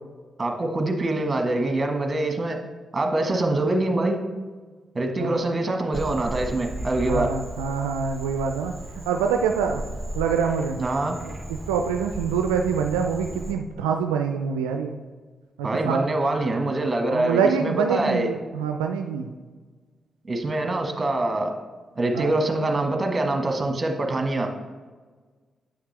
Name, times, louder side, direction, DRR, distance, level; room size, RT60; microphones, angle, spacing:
voice 1, 0.4-2.6 2.9-4.2 4.9-7.3 10.8-11.2 15.6-18.3 20.3-21.6 21.9-24.5, right 2 dB, 35° right, 3 dB, 1.4 m, -24 dB
Frog, 5.9-13.5, right 1 dB, 5° right, 1.4 m, -36 dB
voice 2, 7.0-8.7 9.1-9.8 10.1-10.8 11.2-15.0 15.6-16.1 17.1-19.3 22.1-22.3, right 6 dB, 90° right, 4 dB, 0.4 m, -25 dB
8.4 x 5.8 x 3.3 m, 1.4 s
hypercardioid pair, 40°, 0 cm